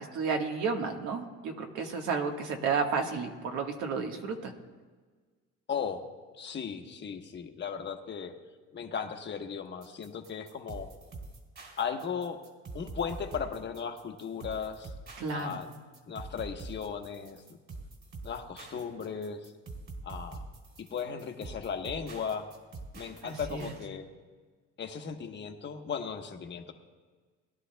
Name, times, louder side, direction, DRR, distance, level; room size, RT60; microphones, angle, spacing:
voice 1, 0.1-4.5 15.2-15.6 23.2-23.7, right 5 dB, 85° right, 3 dB, 1.5 m, -32 dB
voice 2, 5.7-6.0 6.4-8.3 8.7-10.9 11.8-12.4 12.7-14.9 15.3-15.7 16.1-17.4 18.2-19.5 20.0-20.4 20.8-22.5 23.0-24.1 24.8-26.7, left 6 dB, 40° left, 5 dB, 1.2 m, -36 dB
sound 1, 9.8-23.8, right 3 dB, 45° right, 3.1 m, -45 dB
21.5 x 11.5 x 2.3 m, 1.4 s
cardioid pair, 115°, 29 cm